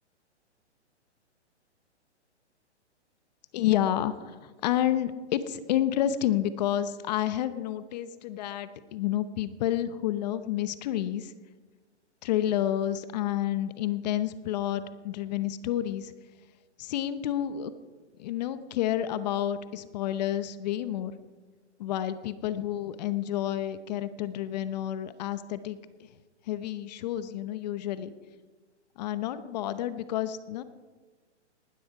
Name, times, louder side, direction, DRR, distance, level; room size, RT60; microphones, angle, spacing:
voice 1, 3.5-11.3 12.2-16.1 16.8-17.7 18.2-21.1 21.8-25.8 26.5-28.1 29.0-30.6, left 12 dB, 35° left, 13 dB, 0.8 m, -30 dB
19.0 x 12.5 x 4.8 m, 1.4 s
hypercardioid pair, 135°, 35 cm